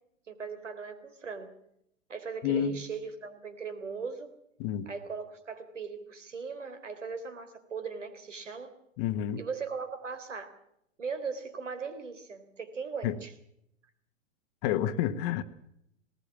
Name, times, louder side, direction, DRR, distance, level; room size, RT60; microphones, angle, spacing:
voice 1, 0.3-1.5 2.1-4.3 4.9-8.7 9.4-10.5 11.0-13.3, right 5 dB, 70° right, 3.7 m, -39 dB
voice 2, 2.4-2.8 4.6-4.9 9.0-9.4 13.0-13.2 14.6-15.4, left 10 dB, 35° left, 1.3 m, -29 dB
19.5 x 19.5 x 7.3 m
figure-of-eight pair, 105°, 37 cm